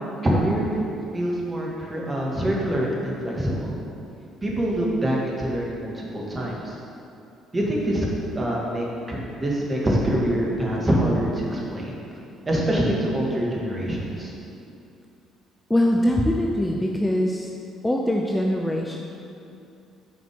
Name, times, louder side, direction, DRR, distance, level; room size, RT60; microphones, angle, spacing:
voice 1, 0.2-0.8 1.1-3.8 4.4-6.8 7.5-8.1 8.3-12.0 12.5-14.3, right 1 dB, 25° right, -3 dB, 1.8 m, -25 dB
voice 2, 15.7-17.5 17.8-19.0, left 1 dB, 10° left, 0 dB, 0.6 m, -22 dB
6.7 x 5.1 x 5.3 m, 2.6 s
figure-of-eight pair, 50°, 0 cm